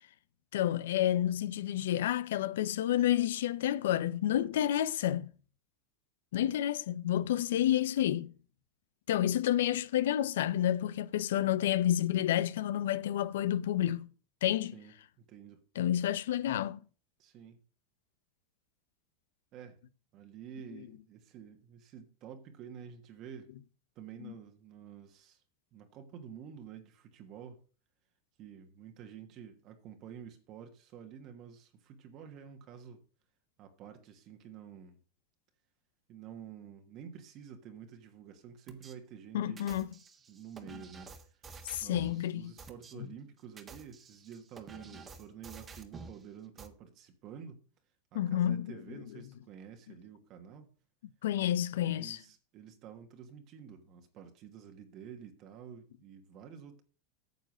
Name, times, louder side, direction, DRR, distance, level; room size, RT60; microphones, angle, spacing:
voice 1, 0.5-5.3 6.3-8.3 9.1-14.1 14.4-14.8 15.8-16.8 24.2-24.3 39.3-39.9 41.6-42.5 43.0-43.1 48.1-48.7 51.2-52.2, left 12 dB, 90° left, 0.7 m, -30 dB
voice 2, 14.7-15.6 17.2-17.6 19.5-19.8 20.1-23.5 23.9-25.4 25.7-27.6 28.4-33.0 33.6-35.0 36.1-39.7 40.3-41.4 41.8-47.6 48.1-50.7 51.8-56.8, right 8 dB, 45° right, 1.4 m, -50 dB
sound 1, 38.7-38.9 39.6-42.2 42.6-42.9 43.4-46.2 46.6-46.7, right 4 dB, 20° right, 1.5 m, -50 dB
9.4 x 6.8 x 6.3 m
supercardioid pair, 130°, 0 cm